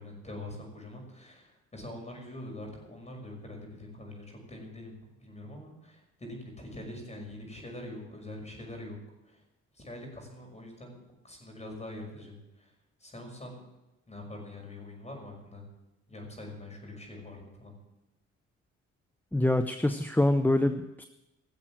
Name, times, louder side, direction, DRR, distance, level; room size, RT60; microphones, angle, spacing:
voice 1, 0.0-9.0 9.3-9.4 9.7-12.7 13.0-13.6 14.1-15.6 16.1-17.8, left 1 dB, 20° left, 1 dB, 6.1 m, -44 dB
voice 2, 19.3-21.1, left 1 dB, 5° left, 8 dB, 0.7 m, -25 dB
18.0 x 7.6 x 7.6 m, 0.96 s
cardioid pair, 90°, 30 cm